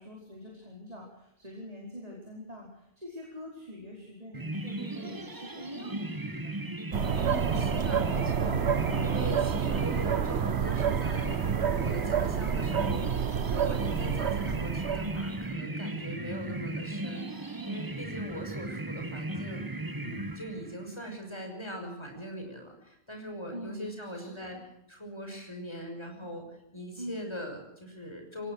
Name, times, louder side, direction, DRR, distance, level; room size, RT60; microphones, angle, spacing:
voice 1, 0.0-6.7 23.5-24.5 27.0-27.4, left 1 dB, 35° right, -2 dB, 5.2 m, -44 dB
sound 1, 4.3-20.9, right 2 dB, 20° right, 1.1 m, -37 dB
sound 2, 6.9-15.5, right 7 dB, 85° right, 1.3 m, -29 dB
voice 2, 7.2-19.7 20.0-24.6 24.9-28.5, equal, 25° left, 3 dB, 6.3 m, -41 dB
24.5 x 19.0 x 6.5 m, 0.80 s
omnidirectional pair, 1.1 m